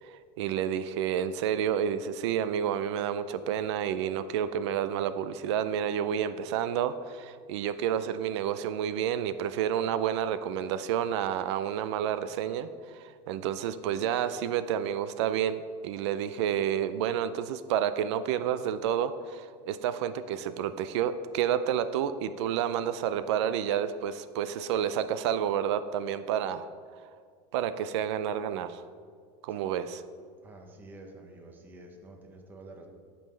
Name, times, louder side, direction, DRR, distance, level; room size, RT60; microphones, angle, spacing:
voice 1, 0.0-26.6 27.5-28.8 29.4-30.0, right 9 dB, 85° right, 12 dB, 0.4 m, -30 dB
voice 2, 30.4-32.9, right 2 dB, 15° right, 2 dB, 0.8 m, -49 dB
14.5 x 5.4 x 3.3 m, 2.1 s
cardioid pair, 180°, 14 cm